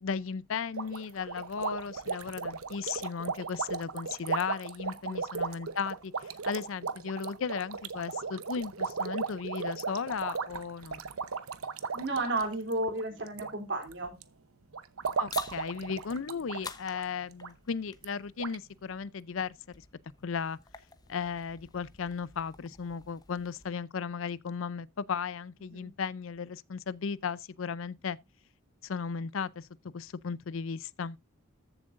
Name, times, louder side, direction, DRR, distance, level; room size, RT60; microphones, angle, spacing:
voice 1, 0.0-11.0 15.2-19.8 20.2-20.6 21.1-28.2 28.8-29.7 29.9-31.2, left 6 dB, 65° left, 0.5 m, -36 dB
sound 1, 0.8-13.5 13.8-14.2 14.7-16.7 16.9-17.0 17.4-17.5 18.0-18.1 18.4-18.6, right 5 dB, 80° right, 0.9 m, -36 dB
voice 2, 11.9-14.1 25.7-25.9, right 2 dB, 55° right, 3.2 m, -33 dB
sound 2, 15.3-23.7, left 5 dB, 20° left, 0.9 m, -50 dB
14.0 x 7.4 x 2.5 m
head